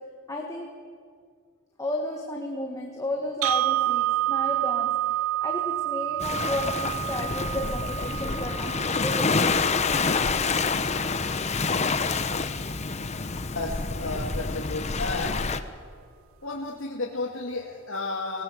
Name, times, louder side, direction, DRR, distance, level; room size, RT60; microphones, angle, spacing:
voice 1, 0.3-0.7 1.8-5.2 5.4-9.5, left 1 dB, 15° left, 0 dB, 1.6 m, -33 dB
sound 1, 3.4-11.5, right 14 dB, 75° right, 0.5 m, -29 dB
Waves surf, 6.2-15.6, left 4 dB, 30° left, 0.8 m, -27 dB
voice 2, 13.6-15.4 16.4-18.4, left 3 dB, 75° left, -2 dB, 2.0 m, -32 dB
19.5 x 19.0 x 7.9 m, 2.1 s
head